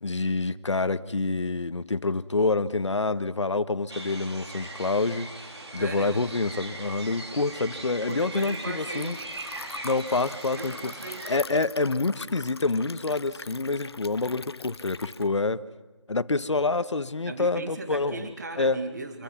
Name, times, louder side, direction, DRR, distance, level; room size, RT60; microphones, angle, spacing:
voice 1, 0.0-9.2 9.8-10.9 11.3-15.6 16.1-18.2 18.6-18.8, left 3 dB, 85° left, 13 dB, 1.4 m, -27 dB
sound 1, 3.9-11.4, right 2 dB, 70° right, 4.3 m, -40 dB
voice 2, 5.8-6.2 8.1-9.2 10.6-11.3 17.3-19.2, right 2 dB, 40° right, 5 dB, 2.0 m, -37 dB
Liquid, 7.0-15.3, left 4 dB, 60° left, 0.8 m, -43 dB
27.0 x 24.0 x 5.9 m, 1.2 s
figure-of-eight pair, 175°, 15 cm